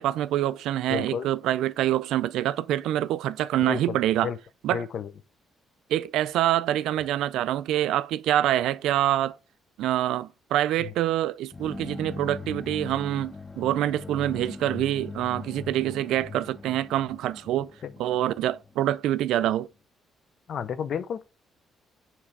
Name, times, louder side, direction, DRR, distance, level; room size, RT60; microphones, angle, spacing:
voice 1, 0.0-4.3 4.6-4.9 5.9-9.4 9.8-17.7 18.0-19.7, right 13 dB, 90° right, 0.4 m, -26 dB
voice 2, 0.9-1.3 3.6-4.0 4.2-4.4 4.7-5.1 17.8-17.9 20.5-21.2, left 7 dB, 60° left, 0.6 m, -31 dB
sound 1, 11.5-19.3, left 4 dB, 20° left, 0.6 m, -40 dB
7.3 x 3.3 x 4.7 m
cardioid pair, 90°, 0 cm